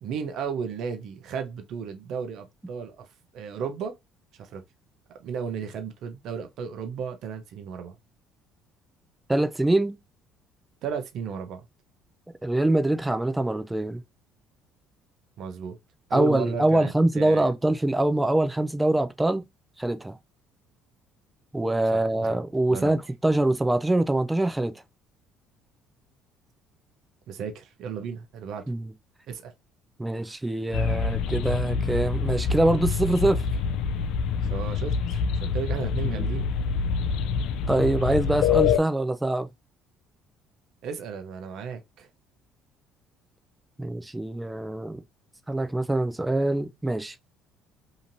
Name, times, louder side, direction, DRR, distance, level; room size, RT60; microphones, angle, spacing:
voice 1, 0.0-3.1 3.3-3.9 4.3-4.6 5.2-8.0 10.8-11.6 15.4-15.8 16.1-17.5 21.9-22.4 22.7-23.0 27.3-28.6 29.3-29.5 34.5-36.5 40.8-42.1, right 6 dB, 65° right, 0.6 m, -34 dB
voice 2, 9.3-10.0 12.4-14.0 16.1-19.4 19.8-20.2 21.5-24.7 28.7-28.9 30.0-33.4 36.0-36.3 37.7-39.5 43.8-45.0 45.5-47.1, right 1 dB, 10° right, 0.5 m, -24 dB
sound 1, 30.7-38.8, left 6 dB, 70° left, 0.3 m, -26 dB
2.9 x 2.5 x 2.6 m
hypercardioid pair, 65°, 0 cm